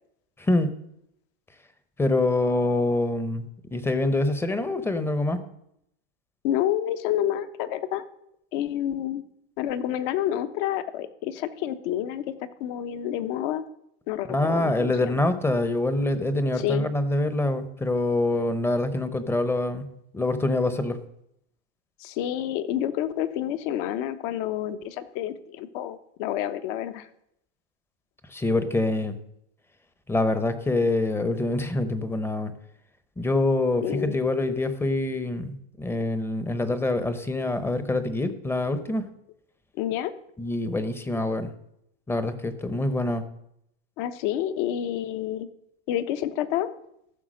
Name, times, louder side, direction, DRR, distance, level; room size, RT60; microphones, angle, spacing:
voice 1, 0.4-0.7 2.0-3.4 3.7-5.4 14.3-19.9 20.1-21.0 28.3-29.2 30.1-32.5 33.2-39.0 40.4-41.5 42.1-43.2, left 2 dB, 10° left, 11 dB, 0.8 m, -25 dB
voice 2, 6.4-8.0 8.5-9.2 9.6-12.2 12.6-13.6 14.1-15.2 16.6-16.9 22.0-27.1 33.8-34.2 39.8-40.1 44.0-45.5 45.9-46.7, left 11 dB, 55° left, 11 dB, 1.0 m, -28 dB
14.0 x 5.8 x 6.3 m, 0.77 s
supercardioid pair, 135°, 30 cm